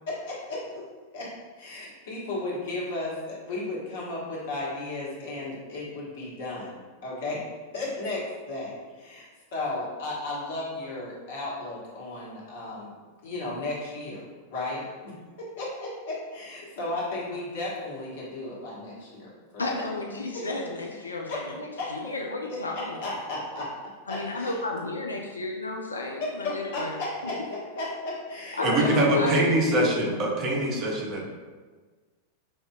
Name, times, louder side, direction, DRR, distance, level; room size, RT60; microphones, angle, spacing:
voice 1, 0.1-0.8 1.1-1.3 1.6-7.4 7.7-12.9 13.2-14.2 14.5-15.1 15.6-19.6 21.3-21.4 21.8-21.9 23.0-23.7 24.1-24.5 26.4-27.3 27.8-29.4, left 2 dB, 55° left, -5 dB, 1.2 m, -34 dB
voice 2, 19.6-23.2 24.1-27.0 27.2-27.3 28.5-30.4 30.7-30.8, left 2 dB, 75° left, 1 dB, 0.3 m, -32 dB
voice 3, 28.6-31.3, right 1 dB, 35° right, -2 dB, 0.8 m, -24 dB
5.4 x 2.7 x 2.3 m, 1.4 s
figure-of-eight pair, 90°, 0 cm